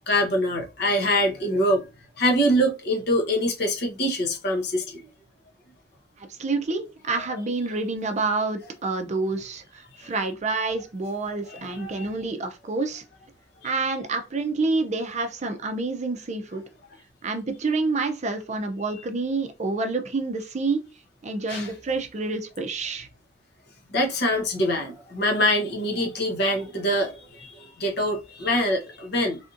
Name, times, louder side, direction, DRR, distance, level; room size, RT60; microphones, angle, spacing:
voice 1, 0.1-1.8 2.2-5.0 11.5-12.1 21.5-21.7 23.9-29.4, equal, 60° left, 1.0 m, -24 dB
voice 2, 6.4-13.0 13.6-16.6 17.2-20.9 21.2-23.1, right 3 dB, 40° right, 0.5 m, -28 dB
3.4 x 2.6 x 2.5 m
head